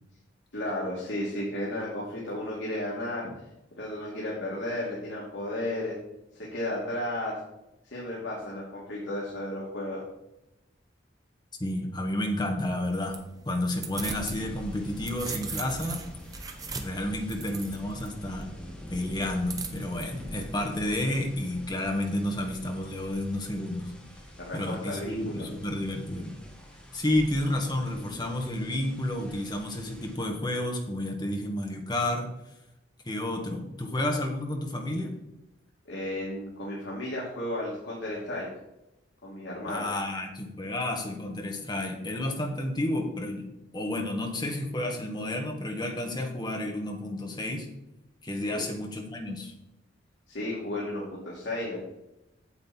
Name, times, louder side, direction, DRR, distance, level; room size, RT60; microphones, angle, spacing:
voice 1, 0.5-3.3 3.8-6.0 6.5-7.4 7.8-10.0 24.4-25.4 35.9-38.5 39.2-39.9 48.5-48.7 50.3-51.8, left 1 dB, 75° left, -5 dB, 2.6 m, -33 dB
voice 2, 11.6-13.2 13.4-16.0 16.8-18.5 18.9-23.9 24.5-26.3 26.9-32.3 33.0-35.1 39.7-47.7 48.2-49.5, left 1 dB, 25° left, 2 dB, 1.5 m, -31 dB
sound 1, 12.6-14.4 14.8-18.1 19.5-20.0, right 4 dB, 20° right, 0.9 m, -39 dB
sound 2, 13.9-30.2, left 1 dB, 5° left, 1.9 m, -45 dB
8.6 x 7.7 x 4.4 m, 0.90 s
head